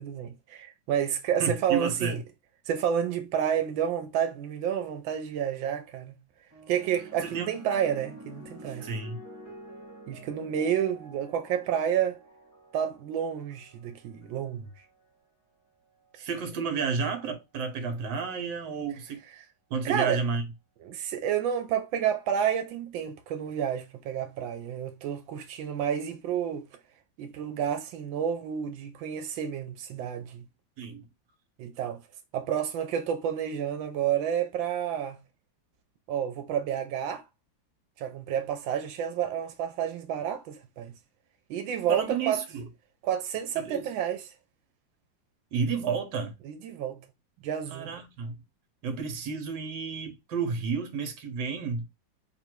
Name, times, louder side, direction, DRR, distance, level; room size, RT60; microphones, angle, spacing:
voice 1, 0.0-2.2 2.7-6.1 6.7-8.8 10.1-12.2 12.7-14.7 16.2-16.3 19.8-20.2 20.8-26.7 27.2-30.4 31.6-32.0 32.3-35.2 36.1-37.3 38.0-40.9 41.5-42.4 43.0-44.2 46.4-47.0 47.4-47.9, right 9 dB, 90° right, 1.4 m, -30 dB
voice 2, 1.4-2.2 7.2-7.5 8.8-9.2 16.2-19.2 19.7-20.5 30.8-31.1 41.9-42.7 43.5-43.9 45.5-46.3 47.7-48.4 48.8-51.9, right 5 dB, 70° right, 1.5 m, -31 dB
sound 1, 6.5-15.1 16.0-16.4, equal, 10° right, 0.9 m, -49 dB
3.4 x 2.6 x 4.4 m
omnidirectional pair, 2.1 m